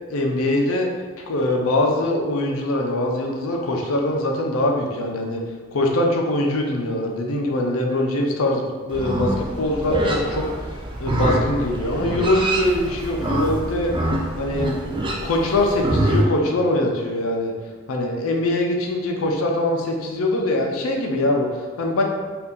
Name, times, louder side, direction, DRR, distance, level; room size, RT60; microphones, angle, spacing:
voice 1, 0.1-0.9 1.2-5.4 5.7-10.5 11.0-13.9 14.4-14.7 15.2-17.5 17.9-22.0, left 1 dB, 85° left, 1 dB, 0.5 m, -22 dB
Livestock farm animals working animals, 8.9-16.2, right 1 dB, 25° right, 0.3 m, -25 dB
2.7 x 2.4 x 3.5 m, 1.5 s
head